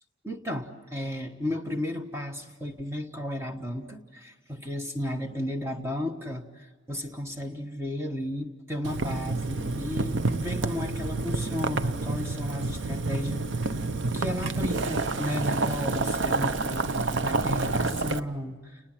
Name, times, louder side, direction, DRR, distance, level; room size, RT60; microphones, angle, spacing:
voice 1, 0.2-13.5 14.1-18.8, left 1 dB, 15° right, 4 dB, 1.2 m, -34 dB
Boiling, 8.8-18.2, right 3 dB, 75° right, 0.8 m, -29 dB
30.0 x 20.0 x 7.6 m, 1.4 s
head